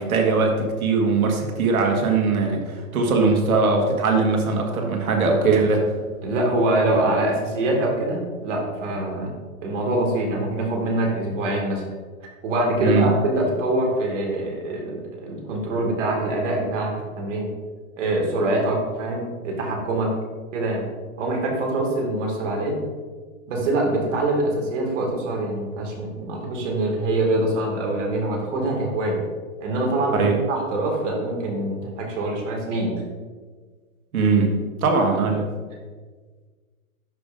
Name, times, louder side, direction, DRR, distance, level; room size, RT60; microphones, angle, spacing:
voice 1, 0.0-5.9 12.8-13.1 30.1-30.4 34.1-35.5, right 4 dB, 80° right, 2 dB, 1.6 m, -20 dB
voice 2, 6.2-9.3 9.6-11.8 12.4-17.5 18.0-20.1 20.5-20.8 21.2-22.8 23.5-29.2 29.6-33.0, right 1 dB, 60° right, 0 dB, 2.1 m, -24 dB
11.5 x 5.1 x 2.5 m, 1.4 s
hypercardioid pair, 140°, 42 cm